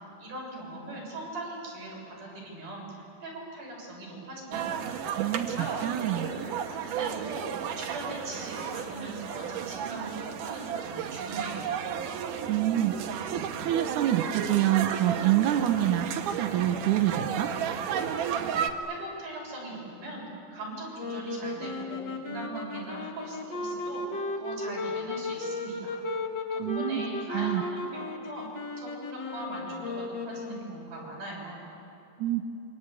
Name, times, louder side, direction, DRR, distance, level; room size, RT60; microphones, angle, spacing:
voice 1, 0.2-4.8 5.5-6.5 6.8-7.4 7.8-11.8 18.9-20.3 20.5-26.0 26.5-28.5 28.8-31.6, right 2 dB, 50° right, -3 dB, 8.2 m, -40 dB
sound 1, 4.5-18.7, right 8 dB, 65° right, 2.4 m, -33 dB
voice 2, 5.2-5.6 5.8-6.3 12.5-13.0 13.3-17.5 26.6-27.0 27.3-27.6 32.2-32.4, right 12 dB, 80° right, 7 dB, 1.8 m, -26 dB
sound 2, 21.0-31.0, left 2 dB, 55° left, 1.2 m, -35 dB
27.5 x 24.5 x 8.4 m, 2.8 s
omnidirectional pair, 4.8 m